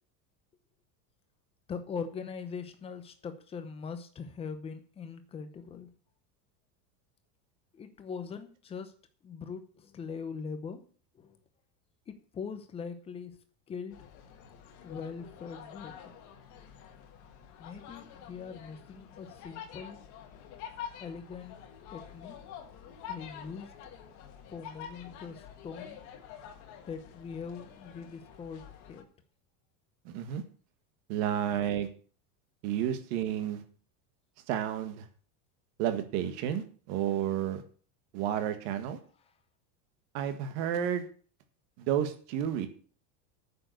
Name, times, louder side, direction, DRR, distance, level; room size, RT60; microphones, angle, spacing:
voice 1, 1.7-5.9 7.7-8.9 9.2-10.8 11.1-11.4 12.1-13.4 13.7-14.0 14.8-16.1 17.6-20.0 21.0-21.6 21.9-22.4 23.1-23.7 24.5-26.0 26.9-29.1, left 6 dB, 15° left, 9 dB, 0.7 m, -41 dB
sound 1, 13.9-29.0, left 8 dB, 40° left, 1.6 m, -48 dB
voice 2, 30.0-30.4 31.1-31.9 32.6-33.6 34.5-35.0 35.8-37.6 38.1-39.0 40.1-41.1 41.8-42.7, right 10 dB, 50° right, 9 dB, 1.8 m, -31 dB
9.3 x 6.9 x 8.0 m, 0.42 s
supercardioid pair, 175°, 46 cm